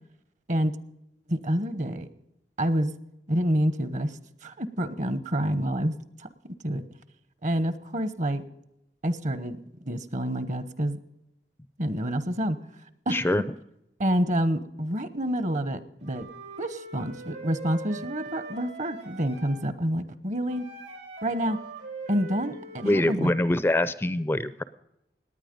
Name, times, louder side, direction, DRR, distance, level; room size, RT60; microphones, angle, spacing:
voice 1, 1.3-2.1 2.6-2.9 3.3-6.8 7.4-8.4 9.0-11.0 11.8-12.6 13.1-13.2 14.0-16.3 16.6-20.6 21.2-21.6 22.1-23.3, equal, 45° right, 13 dB, 0.9 m, -28 dB
voice 2, 13.1-13.4 22.8-24.6, left 1 dB, 15° left, 15 dB, 0.4 m, -24 dB
Wind instrument woodwind instrument, 16.0-19.7 20.5-23.1, right 3 dB, 85° right, 4.8 m, -42 dB
18.0 x 9.6 x 5.2 m, 0.86 s
head